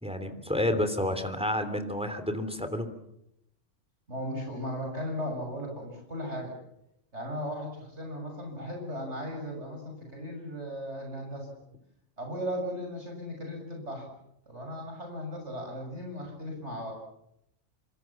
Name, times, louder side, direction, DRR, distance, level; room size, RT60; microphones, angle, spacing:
voice 1, 0.0-2.9, left 1 dB, 5° right, 8 dB, 3.2 m, -30 dB
voice 2, 4.1-6.5 7.1-11.5 12.2-14.0 14.5-16.9, equal, 65° right, 1 dB, 7.0 m, -36 dB
27.0 x 26.0 x 7.3 m, 0.81 s
omnidirectional pair, 1.3 m